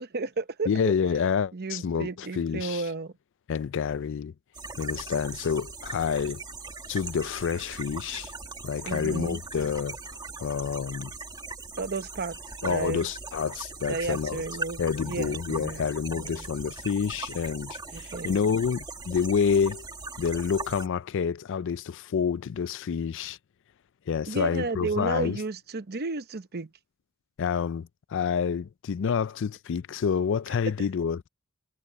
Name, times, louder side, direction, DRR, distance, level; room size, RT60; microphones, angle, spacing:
voice 1, 0.0-0.9 1.5-3.1 8.8-9.4 11.8-13.1 13.9-15.8 16.2-16.5 17.9-18.4 24.3-26.7, right 3 dB, 50° right, 0.8 m, -33 dB
voice 2, 0.7-2.8 3.5-4.3 4.8-6.4 6.9-8.3 8.6-10.0 10.4-11.1 12.6-14.4 14.8-19.8 20.2-23.4 24.1-25.4 27.4-31.3, left 6 dB, 60° left, 0.4 m, -28 dB
sound 1, 4.5-20.9, right 3 dB, 20° right, 1.9 m, -40 dB
head